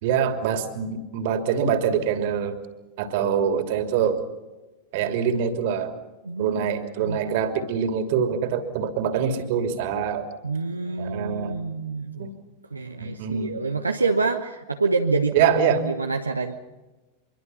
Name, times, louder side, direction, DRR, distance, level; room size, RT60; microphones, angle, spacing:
voice 1, 0.0-2.6 3.0-4.2 4.9-5.9 6.4-10.3 11.0-11.6 12.2-12.3 13.0-13.6 15.3-15.9, right 7 dB, 50° right, 7 dB, 3.0 m, -24 dB
voice 2, 6.2-6.7 7.0-7.2 10.4-12.3 12.7-15.5 15.8-16.5, right 4 dB, 80° right, 4 dB, 1.2 m, -27 dB
25.5 x 23.0 x 5.6 m, 1.1 s
figure-of-eight pair, 90°, 0 cm